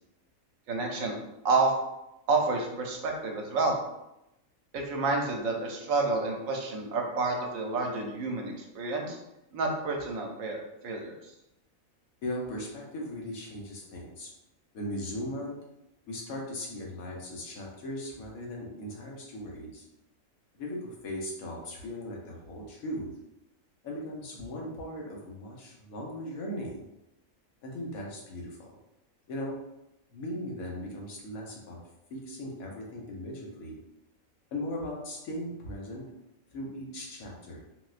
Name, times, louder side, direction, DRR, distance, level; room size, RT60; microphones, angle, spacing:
voice 1, 0.7-1.2 1.4-1.7 2.3-3.8 4.7-9.2 9.5-11.1, right 3 dB, 75° right, 1 dB, 1.0 m, -29 dB
voice 2, 12.2-14.3 14.7-15.5 16.1-19.8 20.6-23.1 23.8-26.8 27.6-28.7 29.3-29.5 30.1-31.8 32.1-33.8 34.5-36.0 36.5-37.6, left 1 dB, 90° left, -2 dB, 1.2 m, -38 dB
4.0 x 2.1 x 2.4 m, 0.89 s
omnidirectional pair, 1.4 m